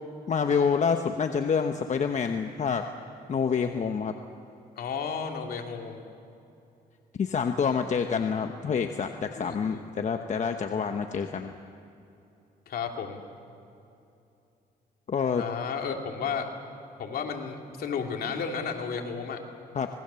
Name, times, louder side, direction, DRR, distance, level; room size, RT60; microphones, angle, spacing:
voice 1, 0.3-2.8 3.3-4.1 7.2-11.5 15.1-15.4 19.7-19.9, left 6 dB, 45° left, 6 dB, 1.1 m, -27 dB
voice 2, 4.8-6.0 9.4-9.9 12.7-13.2 15.4-16.5 17.0-19.4, left 6 dB, 65° left, 3 dB, 2.8 m, -33 dB
26.5 x 20.0 x 7.0 m, 2.7 s
cardioid pair, 90°, 17 cm